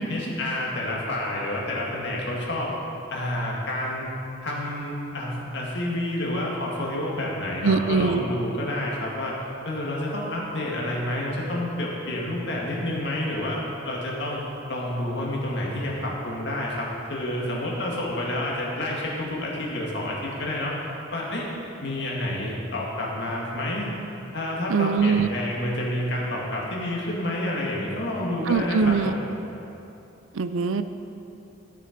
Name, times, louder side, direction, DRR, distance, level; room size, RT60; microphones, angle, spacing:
voice 1, 0.1-2.7 3.1-4.1 4.4-9.3 9.6-14.4 14.7-20.8 21.1-21.4 21.8-23.9 24.3-29.3, left 1 dB, 60° left, -3 dB, 2.0 m, -29 dB
voice 2, 7.6-8.2 24.7-25.3 28.5-29.1 30.3-30.8, right 5 dB, 90° right, 11 dB, 0.5 m, -22 dB
13.0 x 6.8 x 5.2 m, 2.9 s
head